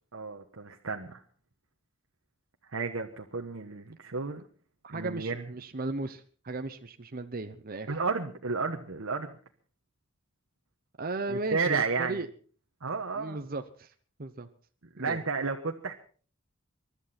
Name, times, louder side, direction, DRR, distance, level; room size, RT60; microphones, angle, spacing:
voice 1, 0.1-1.2 2.7-4.4 4.9-5.4 7.9-9.3 11.3-12.2 12.8-13.4 14.9-15.9, right 4 dB, 90° right, 3 dB, 1.2 m, -32 dB
voice 2, 4.8-7.9 11.0-12.3 13.1-13.9 14.2-14.5 15.0-15.2, right 2 dB, 45° right, 7 dB, 0.9 m, -36 dB
24.0 x 12.0 x 4.3 m, 0.43 s
head